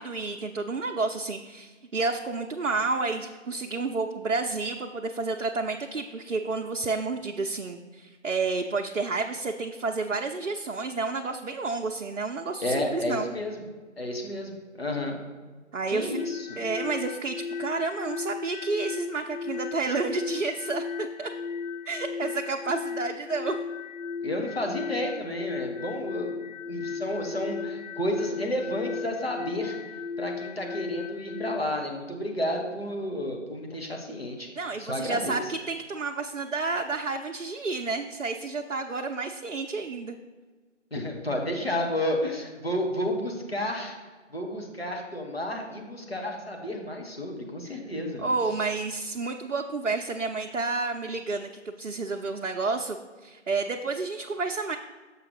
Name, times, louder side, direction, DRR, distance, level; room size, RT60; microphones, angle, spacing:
voice 1, 0.0-13.3 15.7-16.2 16.6-21.3 21.9-23.6 34.6-40.2 47.7-47.8 48.2-51.5 51.8-54.8, right 3 dB, 85° right, 2 dB, 0.6 m, -30 dB
voice 2, 12.6-13.6 14.0-15.2 15.9-16.6 24.2-34.5 34.8-35.5 40.9-44.0 44.3-48.6, left 1 dB, 50° left, 1 dB, 1.4 m, -31 dB
sound 1, 16.1-31.6, left 5 dB, 85° left, 0.7 m, -35 dB
6.8 x 4.8 x 5.0 m, 1.4 s
figure-of-eight pair, 175°, 37 cm